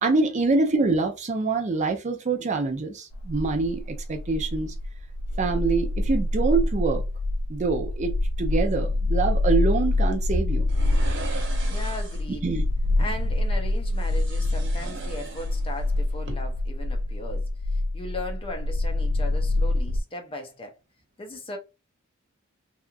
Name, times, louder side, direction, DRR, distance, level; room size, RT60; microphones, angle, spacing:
voice 1, 0.0-4.7 5.4-7.0 7.5-10.7 12.3-12.6, right 3 dB, 35° right, 0.4 m, -25 dB
sound 1, 3.1-20.0, left 2 dB, 75° left, 0.3 m, -26 dB
sound 2, 10.7-12.3 13.9-15.9 16.2-16.3, right 4 dB, 60° right, 0.9 m, -40 dB
voice 2, 11.7-12.5 13.0-20.8 21.2-21.6, left 1 dB, 25° left, 0.5 m, -37 dB
2.8 x 2.3 x 2.4 m
head